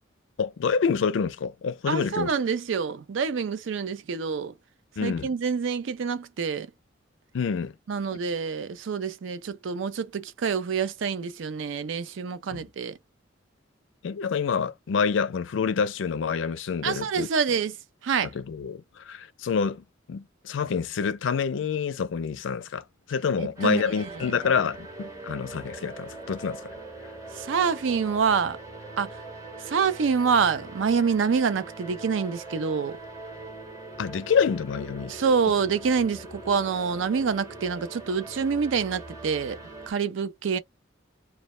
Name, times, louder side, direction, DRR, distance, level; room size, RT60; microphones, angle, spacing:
voice 1, 0.4-2.3 5.0-5.3 7.3-7.7 12.5-12.7 14.0-17.6 18.3-26.7 27.0-27.1 34.0-35.2, left 6 dB, 75° left, 0.4 m, -27 dB
voice 2, 1.9-4.5 5.0-6.7 7.9-12.9 16.8-17.7 18.0-18.3 23.4-23.8 27.4-28.6 29.0-29.1 29.7-33.0 35.1-39.6 39.9-40.6, right 6 dB, 75° right, 0.4 m, -26 dB
sound 1, 23.6-39.9, right 2 dB, 15° right, 0.9 m, -42 dB
2.1 x 2.1 x 2.9 m
head